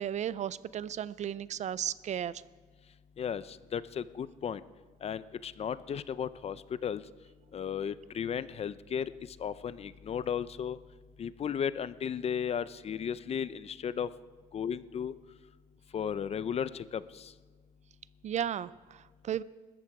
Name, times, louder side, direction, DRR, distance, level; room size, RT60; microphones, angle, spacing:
voice 1, 0.0-2.3 18.2-19.4, right 10 dB, 45° right, 19 dB, 0.4 m, -34 dB
voice 2, 3.2-4.6 5.0-7.0 7.5-9.1 9.4-10.8 11.2-14.1 14.5-15.1 15.9-17.3, left 8 dB, 35° left, 16 dB, 0.6 m, -35 dB
20.5 x 14.0 x 4.8 m, 1.4 s
cardioid pair, 110°, 17 cm